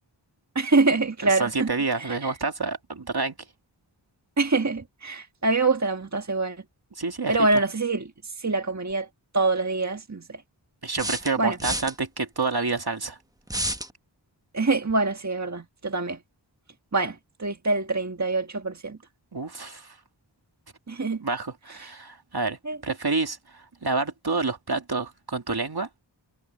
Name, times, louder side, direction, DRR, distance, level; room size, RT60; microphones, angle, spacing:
voice 1, 0.5-1.7 2.0-2.3 4.4-6.6 7.3-9.1 9.3-10.4 11.4-11.6 14.5-16.2 16.9-19.0 20.9-21.2 21.8-21.9 22.7-22.8, right 3 dB, 40° right, 1.4 m, -25 dB
voice 2, 1.2-3.4 7.0-7.3 10.8-13.2 19.3-20.0 21.2-25.9, right 3 dB, 55° right, 2.3 m, -28 dB
sound 1, 8.9-9.0 11.0-11.9 13.5-13.9, right 1 dB, 10° right, 1.0 m, -29 dB
wide cardioid pair, 50°, 45 cm